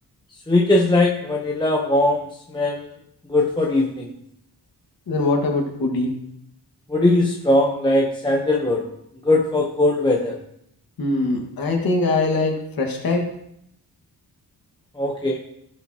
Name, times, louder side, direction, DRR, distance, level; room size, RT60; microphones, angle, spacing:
voice 1, 0.5-2.8 3.3-4.1 6.9-8.8 9.2-10.4 15.0-15.4, left 2 dB, 10° left, -1 dB, 0.9 m, -20 dB
voice 2, 5.1-6.1 11.0-13.3, left 2 dB, 60° left, 0 dB, 1.8 m, -22 dB
17.0 x 7.2 x 2.9 m, 0.74 s
wide cardioid pair, 170°, 40 cm